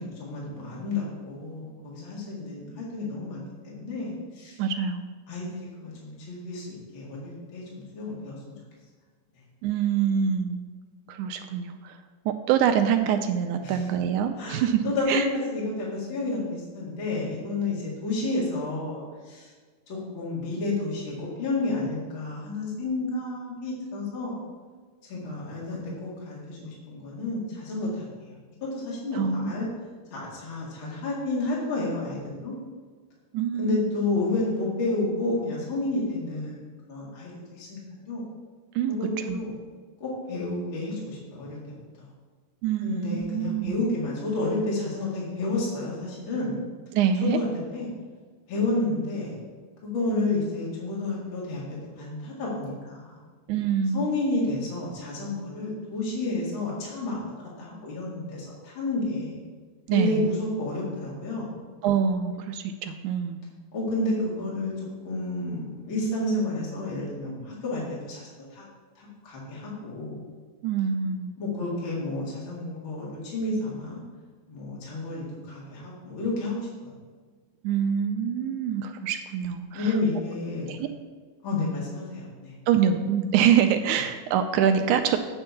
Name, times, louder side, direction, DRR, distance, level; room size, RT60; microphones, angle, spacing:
voice 1, 0.0-4.6 5.3-8.4 13.6-13.8 14.4-19.5 19.9-24.4 25.1-28.4 28.8-29.7 30.1-32.5 33.6-36.6 36.9-38.2 38.9-39.5 40.0-41.7 42.0-42.1 42.8-46.6 47.3-47.9 48.5-49.4 49.8-51.6 52.0-53.2 53.9-59.4 59.9-61.6 63.7-64.7 65.0-68.6 69.0-70.2 71.4-74.0 74.5-76.9 79.7-80.7 81.4-82.5, left 2 dB, 40° left, -5 dB, 2.5 m, -30 dB
voice 2, 4.6-5.0 9.6-10.6 11.1-12.0 12.3-15.3 29.1-29.7 33.3-33.9 38.8-39.4 42.6-43.8 46.9-47.4 53.5-54.1 59.9-60.3 61.8-63.4 70.6-71.3 77.6-80.0 80.7-80.9 82.7-85.2, right 8 dB, 80° right, 7 dB, 1.9 m, -25 dB
8.7 x 4.5 x 7.0 m, 1.5 s
omnidirectional pair, 3.7 m